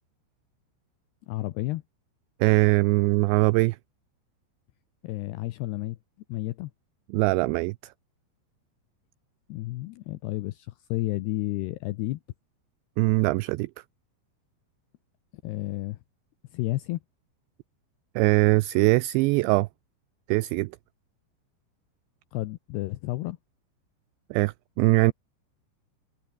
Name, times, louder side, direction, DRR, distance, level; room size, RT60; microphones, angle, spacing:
voice 1, 1.3-1.8 5.0-6.0 6.3-6.7 9.5-12.2 15.4-16.0 16.5-17.0 22.3-23.4, left 18 dB, 85° left, 2.4 m, -31 dB
voice 2, 2.4-3.8 7.1-7.8 13.0-13.7 18.2-19.7 20.3-20.7 24.3-25.1, right 23 dB, 90° right, 2.5 m, -22 dB
omnidirectional pair, 5.7 m